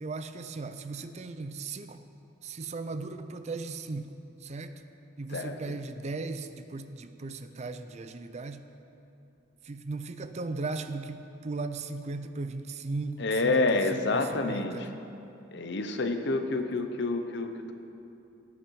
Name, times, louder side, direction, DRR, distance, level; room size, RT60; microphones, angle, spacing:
voice 1, 0.0-2.0 2.4-4.1 4.4-4.8 5.2-8.7 9.6-15.0, right 3 dB, 35° right, 10 dB, 0.5 m, -37 dB
voice 2, 5.3-5.8 13.2-14.9 15.5-17.7, left 3 dB, 60° left, 7 dB, 0.9 m, -28 dB
16.5 x 9.4 x 4.7 m, 2.7 s
head